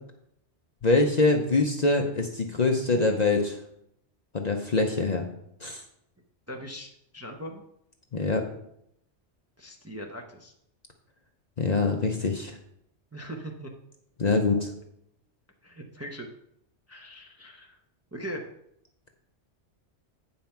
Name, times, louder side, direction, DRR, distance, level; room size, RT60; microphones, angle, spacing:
voice 1, 0.8-3.6 4.3-5.3 5.6-5.8 8.1-8.4 11.6-12.5 14.2-14.7, left 3 dB, 45° left, 3 dB, 0.7 m, -24 dB
voice 2, 6.5-7.6 9.6-10.5 13.1-13.7 15.6-16.3 16.9-17.8 18.1-18.4, equal, 15° right, 1 dB, 0.6 m, -40 dB
8.6 x 5.6 x 4.4 m, 0.75 s
omnidirectional pair, 1.2 m